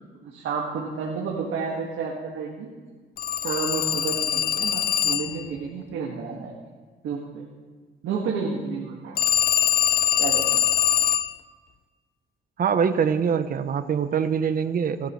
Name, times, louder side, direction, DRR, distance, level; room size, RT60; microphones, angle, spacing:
voice 1, 0.2-2.7 3.4-6.5 7.0-7.4 8.0-9.2 10.2-10.6, right 5 dB, 80° right, -2 dB, 1.9 m, -30 dB
Telephone, 3.2-5.5 9.2-11.4, left 10 dB, 50° left, 0.5 m, -23 dB
voice 2, 12.6-15.1, right 7 dB, 45° right, 10 dB, 0.8 m, -24 dB
27.5 x 12.5 x 3.2 m, 1.5 s
cardioid pair, 90°, 20 cm